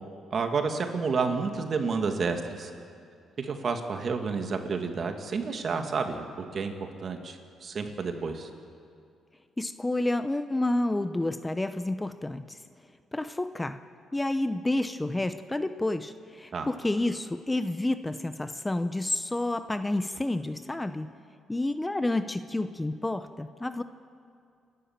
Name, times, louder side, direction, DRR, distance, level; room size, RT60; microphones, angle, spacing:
voice 1, 0.3-2.7 3.4-6.3 6.5-8.5 16.5-16.7, right 4 dB, 50° right, 5 dB, 2.2 m, -30 dB
voice 2, 9.6-12.6 13.1-13.8 14.1-21.1 21.5-23.8, left 2 dB, 15° left, 11 dB, 0.7 m, -29 dB
28.5 x 12.5 x 7.4 m, 2.4 s
cardioid pair, 90°, 0 cm